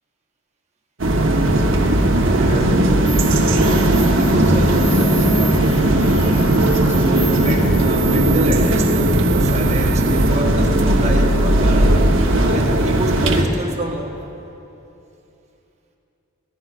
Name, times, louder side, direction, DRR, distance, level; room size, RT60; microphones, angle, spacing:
sound 1, 1.0-13.4, right 1 dB, 70° right, 1.0 m, -16 dB
voice 1, 2.3-2.8 3.3-12.1 12.5-14.2, right 1 dB, 35° right, 1 dB, 1.0 m, -29 dB
sound 2, 3.0-10.3, right 5 dB, 15° left, 2.5 m, -32 dB
17.0 x 14.0 x 2.5 m, 2.8 s
head